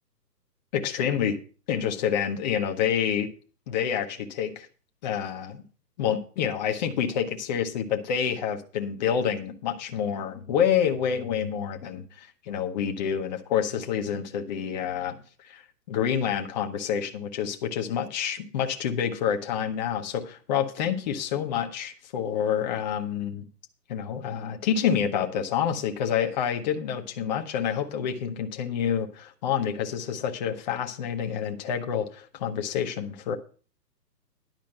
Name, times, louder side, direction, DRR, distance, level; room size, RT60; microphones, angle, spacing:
voice 1, 0.7-1.4 1.7-3.3 3.7-4.7 5.0-5.6 6.0-15.2 15.4-15.6 15.9-23.5 23.9-33.3, left 8 dB, 25° left, 4 dB, 0.9 m, -28 dB
10.5 x 5.0 x 7.8 m, 0.38 s
hypercardioid pair, 150°, 50 cm